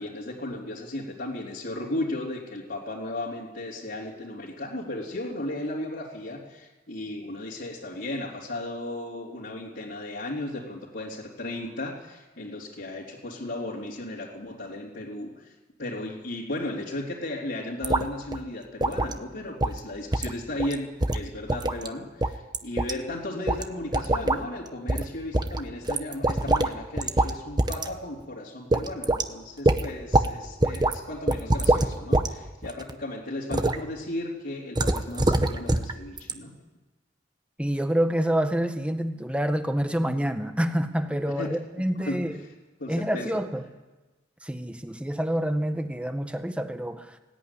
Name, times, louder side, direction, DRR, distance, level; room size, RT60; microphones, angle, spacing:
voice 1, 0.0-36.5 41.4-41.5 42.0-42.2 42.4-42.5 42.8-43.3, left 1 dB, 65° left, -7 dB, 3.4 m, -35 dB
sound 1, 17.8-18.1 18.3-18.4 18.8-19.2 19.6-19.8 20.1-20.3 20.6-20.7 21.0-21.9 22.2-22.9 23.5-23.6 23.9-24.4 24.9-25.1 25.3-26.7 27.0-27.3 27.6-27.9 28.2-28.3 28.7-29.3 29.7-30.3 30.6-30.9 31.3-32.3 32.6-32.9 33.5-33.8 34.8-35.9 36.2-36.3, right 2 dB, 25° right, 1.0 m, -24 dB
voice 2, 37.6-42.3 42.9-43.6 44.4-47.2, equal, 5° right, 7 dB, 1.5 m, -27 dB
20.0 x 16.5 x 9.9 m, 1.2 s
head